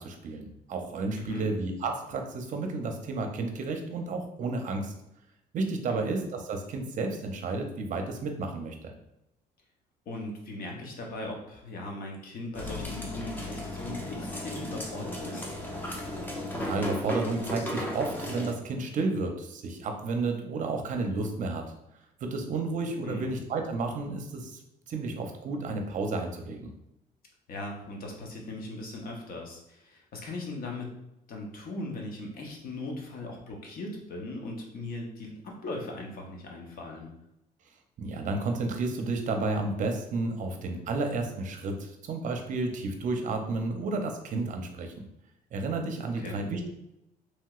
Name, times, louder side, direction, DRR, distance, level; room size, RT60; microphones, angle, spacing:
voice 1, 0.0-4.9 5.5-8.9 16.5-21.6 22.2-24.6 24.9-26.7 38.0-45.1 45.5-46.7, right 3 dB, 50° right, 4 dB, 0.6 m, -32 dB
voice 2, 1.2-1.5 5.9-6.1 10.1-15.5 23.0-23.4 27.5-30.9 31.3-37.1 46.2-46.4, left 2 dB, 60° left, 0 dB, 0.9 m, -39 dB
sound 1, 12.5-18.5, left 1 dB, 10° left, 0.6 m, -35 dB
3.1 x 2.8 x 2.4 m, 0.87 s
cardioid pair, 110°, 17 cm